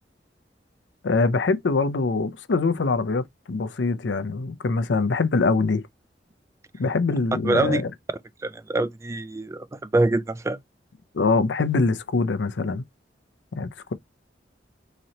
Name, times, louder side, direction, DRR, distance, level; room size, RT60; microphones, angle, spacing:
voice 1, 1.0-5.9 6.8-7.9 11.1-12.8 13.6-13.9, left 3 dB, 80° left, 0.5 m, -23 dB
voice 2, 7.4-7.8 8.4-10.6, right 2 dB, 15° right, 0.3 m, -24 dB
4.0 x 3.0 x 2.7 m
head